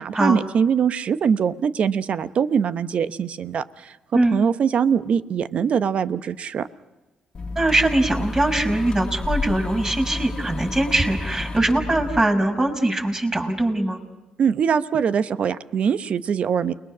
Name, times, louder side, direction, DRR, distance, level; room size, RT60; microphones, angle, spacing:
voice 1, 0.0-6.7 14.4-16.7, right 7 dB, 60° right, 12 dB, 1.0 m, -22 dB
sound 1, 7.3-12.2, left 3 dB, 40° left, 1.9 m, -30 dB
voice 2, 7.6-14.0, right 1 dB, 30° right, 2 dB, 5.6 m, -21 dB
29.5 x 21.0 x 6.2 m, 1.1 s
supercardioid pair, 55°, 2 cm